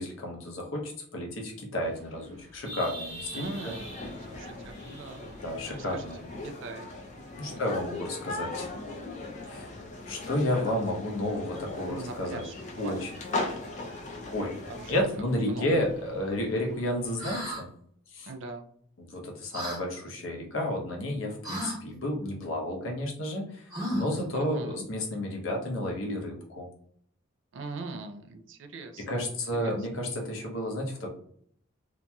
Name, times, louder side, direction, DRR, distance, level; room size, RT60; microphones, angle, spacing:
voice 1, 0.0-3.7 5.4-6.2 7.4-8.7 9.5-9.8 10.1-12.4 12.8-13.1 14.3-14.6 14.9-17.7 18.1-18.3 19.0-26.7 29.1-31.1, left 1 dB, 75° left, 0 dB, 0.8 m, -31 dB
sound 1, 1.8-17.6, right 1 dB, 35° right, 0.8 m, -50 dB
sound 2, 3.3-15.0, left 2 dB, 35° left, 0.4 m, -39 dB
voice 2, 3.3-6.1 6.4-6.9 7.4-7.8 11.9-13.0 13.3-13.6 14.3-15.8 18.3-18.7 24.3-24.9 27.5-29.9, right 3 dB, 65° right, 6 dB, 0.4 m, -42 dB
sound 3, 17.2-17.6 19.5-19.8 21.4-21.8 23.7-24.2, right 1 dB, 20° right, 1.1 m, -34 dB
2.9 x 2.6 x 2.2 m, 0.63 s
head